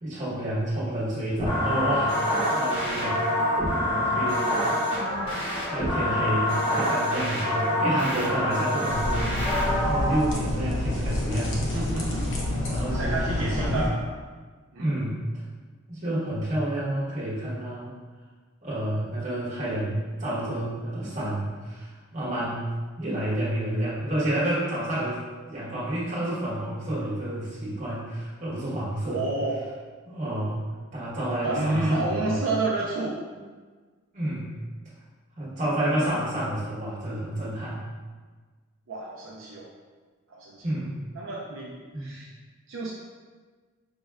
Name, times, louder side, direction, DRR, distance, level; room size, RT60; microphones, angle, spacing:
voice 1, 0.0-3.2 3.8-4.6 5.4-11.7 12.5-13.9 14.8-15.2 15.9-17.9 18.6-22.7 23.0-29.2 30.0-30.6 30.9-32.4 34.1-34.5 35.4-37.8 40.6-41.0 41.9-42.1, right 1 dB, 35° right, -8 dB, 1.1 m, -30 dB
sound 1, 1.4-10.2, left 1 dB, 25° left, 0.9 m, -26 dB
sound 2, 8.9-13.9, left 1 dB, 60° left, 0.6 m, -28 dB
voice 2, 11.7-12.6 12.9-14.0 14.7-14.8 29.1-29.6 31.4-33.2 38.9-39.7 40.3-40.7 41.2-42.3 42.7-42.9, right 2 dB, 65° right, -5 dB, 0.4 m, -29 dB
5.2 x 2.2 x 2.3 m, 1.4 s
head